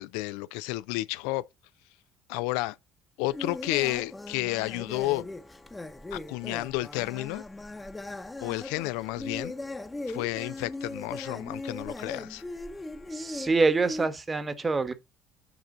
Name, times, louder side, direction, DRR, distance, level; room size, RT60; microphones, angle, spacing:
voice 1, 0.0-1.5 2.3-2.8 3.2-5.3 6.1-7.4 8.4-9.5 10.1-12.4, left 19 dB, 70° left, 0.3 m, -31 dB
sound 1, 3.3-14.1, left 2 dB, 15° left, 0.8 m, -39 dB
voice 2, 13.1-14.9, right 3 dB, 25° right, 1.2 m, -25 dB
8.1 x 4.9 x 3.8 m
hypercardioid pair, 60°, 0 cm